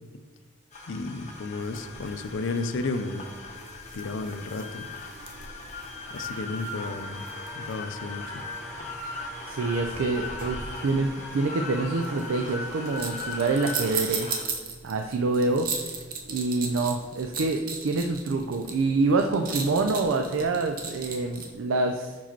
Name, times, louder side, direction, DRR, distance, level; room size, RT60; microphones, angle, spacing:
sound 1, 0.7-14.4, left 3 dB, 35° left, 0.8 m, -39 dB
voice 1, 0.9-3.2 3.9-4.9 6.1-7.2 7.5-8.4, left 3 dB, 70° left, 10 dB, 0.4 m, -33 dB
sound 2, 1.6-21.5, right 5 dB, 45° right, 0.7 m, -39 dB
sound 3, 6.7-14.3, equal, ahead, 0.7 m, -45 dB
voice 2, 9.4-14.4 14.8-15.7 16.3-22.2, right 3 dB, 90° right, 4 dB, 0.4 m, -26 dB
5.5 x 4.9 x 4.4 m, 1.4 s
head